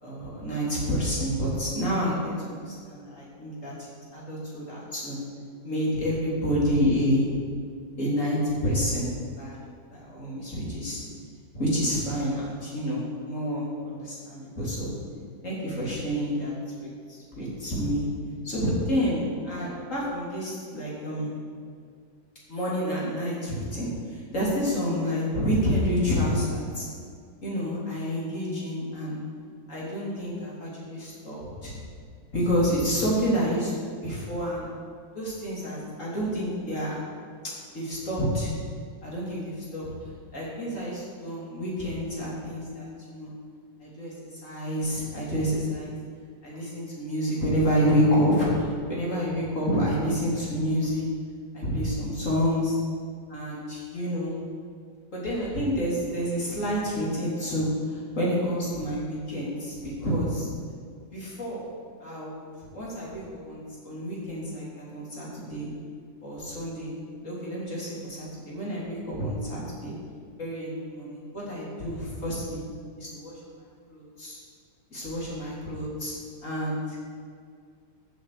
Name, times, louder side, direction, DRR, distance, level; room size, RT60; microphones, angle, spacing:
voice 1, 0.0-3.7 4.1-5.2 5.6-7.3 8.0-8.4 8.6-9.1 9.4-9.6 9.9-11.0 11.5-14.9 15.4-16.5 16.8-18.1 18.4-21.3 22.5-26.9 27.4-29.2 29.7-31.7 32.3-34.7 35.2-37.0 37.7-38.5 39.0-39.9 40.3-43.3 43.8-44.1 44.4-45.9 46.4-51.1 51.5-52.7 53.3-54.4 55.1-60.5 61.1-61.6 62.0-62.4 62.7-65.7 66.2-66.9 67.2-69.9 70.4-72.6 73.0-73.3 73.9-74.4 74.9-76.1 76.4-76.8, equal, 40° left, -6 dB, 3.6 m, -28 dB
14.5 x 8.2 x 4.9 m, 2.1 s
omnidirectional pair, 2.0 m